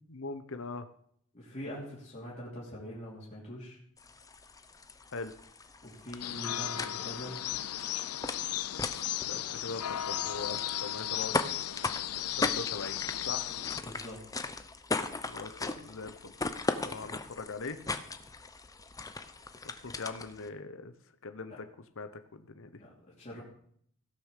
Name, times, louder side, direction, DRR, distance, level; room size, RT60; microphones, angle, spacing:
voice 1, 0.1-0.9 5.1-5.3 9.3-11.3 12.4-13.0 13.3-13.5 15.2-16.3 16.8-17.8 19.6-20.9 21.2-21.6 22.0-22.7, left 3 dB, 65° left, 9 dB, 0.9 m, -41 dB
voice 2, 1.3-3.8 5.8-7.5 13.5-14.2 17.0-17.1 22.8-23.4, equal, 35° left, -6 dB, 3.1 m, -44 dB
sound 1, 4.0-20.5, left 3 dB, 15° left, 0.7 m, -38 dB
sound 2, 6.2-13.8, left 12 dB, 90° left, 0.6 m, -35 dB
16.0 x 6.5 x 6.6 m, 0.64 s
head